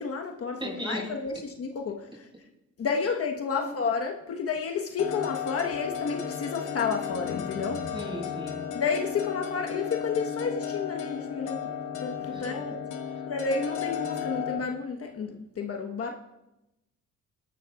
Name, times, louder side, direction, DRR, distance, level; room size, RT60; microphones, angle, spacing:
voice 1, 0.0-2.0 2.8-7.9 8.7-11.6 12.0-12.7 13.3-16.1, left 5 dB, 50° left, 3 dB, 1.1 m, -31 dB
voice 2, 0.6-1.1 3.5-3.7 7.9-8.7 12.3-12.8, equal, 15° right, 0 dB, 5.7 m, -37 dB
sound 1, 5.0-14.6, left 8 dB, 85° left, 1.1 m, -34 dB
21.5 x 12.0 x 2.3 m, 0.94 s
cardioid pair, 90°, 30 cm